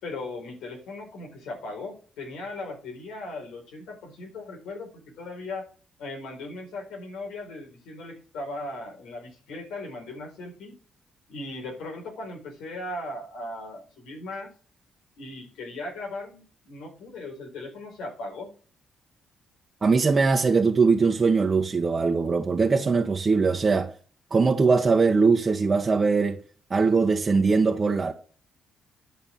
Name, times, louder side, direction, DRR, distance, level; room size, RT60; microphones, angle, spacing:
voice 1, 0.0-5.7 6.0-10.8 11.3-14.5 15.2-18.5, left 2 dB, 85° left, 4.4 m, -38 dB
voice 2, 19.8-23.9 24.3-26.4 26.7-28.1, right 4 dB, 35° right, 1.2 m, -21 dB
11.5 x 5.8 x 7.2 m
cardioid pair, 90°, 0 cm